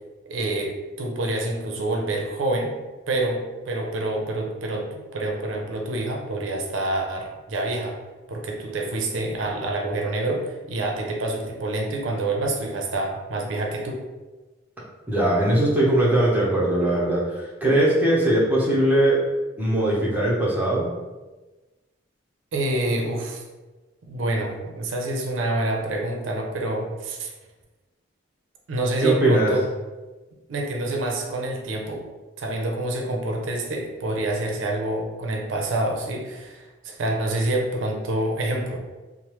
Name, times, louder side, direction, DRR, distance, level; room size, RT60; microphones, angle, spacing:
voice 1, 0.3-2.7 3.1-4.9 5.1-8.0 8.3-14.0 22.5-23.4 24.0-27.3 28.7-29.6 30.5-32.0 32.4-38.8, right 2 dB, 85° right, 1 dB, 0.5 m, -27 dB
voice 2, 15.1-19.2 19.6-20.9 29.0-29.5, right 1 dB, 10° right, -6 dB, 0.6 m, -20 dB
3.1 x 2.0 x 2.9 m, 1.2 s
head